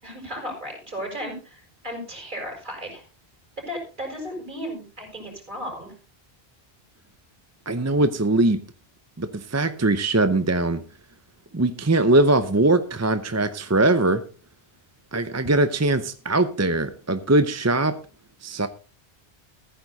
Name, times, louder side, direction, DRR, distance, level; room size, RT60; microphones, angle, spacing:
voice 1, 0.0-3.0 3.6-5.9, equal, 50° right, 1 dB, 5.7 m, -35 dB
voice 2, 7.7-8.6 9.2-10.8 11.5-14.2 15.1-18.0 18.4-18.7, right 2 dB, 20° right, 11 dB, 0.6 m, -21 dB
15.0 x 9.5 x 4.0 m, 0.36 s
omnidirectional pair, 1.1 m